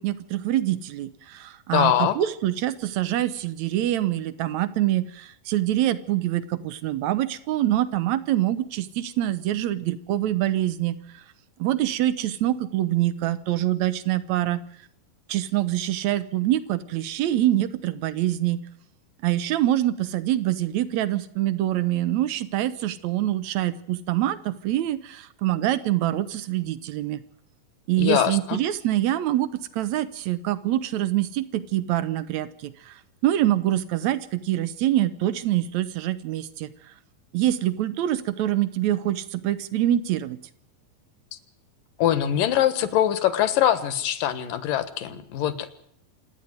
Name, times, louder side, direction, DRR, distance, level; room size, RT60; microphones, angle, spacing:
voice 1, 0.0-11.2 11.6-14.6 15.3-18.6 19.2-27.2 27.9-36.7 37.3-40.4, right 13 dB, 70° right, 15 dB, 1.9 m, -25 dB
voice 2, 1.7-2.2 28.0-28.6 42.0-45.7, left 11 dB, 70° left, 13 dB, 2.9 m, -23 dB
27.0 x 10.5 x 9.4 m, 0.70 s
omnidirectional pair, 4.2 m